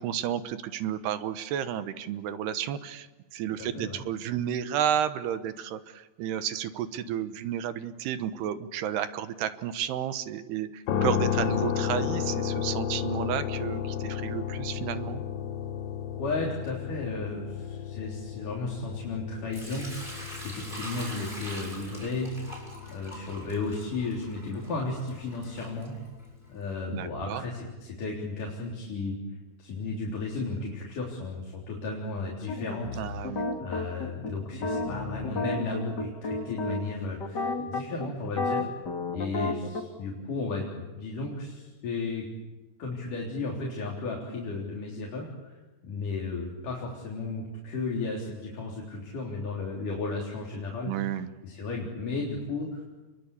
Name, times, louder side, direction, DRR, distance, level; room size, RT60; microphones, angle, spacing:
voice 1, 0.0-15.2 26.9-27.4 33.0-33.6 50.9-51.3, right 10 dB, 75° right, 11 dB, 3.0 m, -32 dB
voice 2, 3.6-4.0 16.2-22.6 22.9-26.0 26.5-29.2 29.6-33.3 33.6-38.7 39.1-42.2 42.8-50.9 51.4-52.8, left 3 dB, 50° left, -3 dB, 5.0 m, -34 dB
sound 1, 10.9-24.9, left 9 dB, 75° left, 3.2 m, -33 dB
Sink (filling or washing) / Liquid, 19.5-26.5, right 1 dB, 10° right, 7.2 m, -43 dB
sound 2, 32.5-39.8, left 3 dB, 35° left, 2.0 m, -32 dB
29.5 x 22.5 x 8.5 m, 1.2 s
omnidirectional pair, 5.0 m